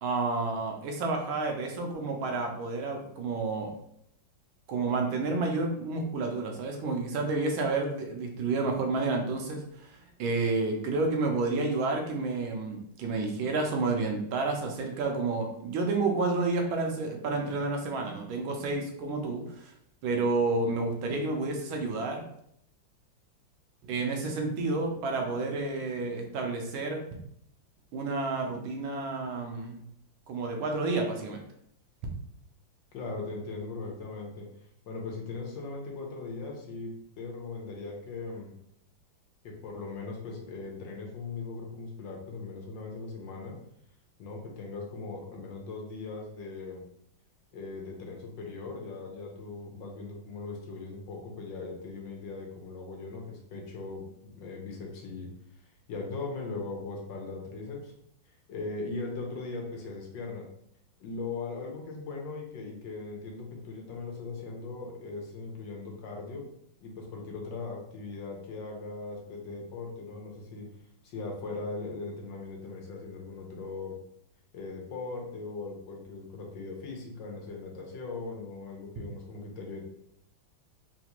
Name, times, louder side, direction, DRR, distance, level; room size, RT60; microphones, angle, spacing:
voice 1, 0.0-3.7 4.7-19.7 20.0-22.2 23.8-27.0 27.9-29.8 30.3-31.4, right 3 dB, 85° right, 3 dB, 1.5 m, -30 dB
voice 2, 32.9-34.5 34.9-38.5 39.4-43.6 44.2-46.8 47.5-55.3 55.6-57.9 58.3-60.5 61.0-66.4 66.8-70.7 71.0-74.0 74.5-79.8, left 3 dB, 75° left, 0 dB, 1.4 m, -39 dB
3.8 x 2.4 x 2.9 m, 0.71 s
omnidirectional pair, 2.1 m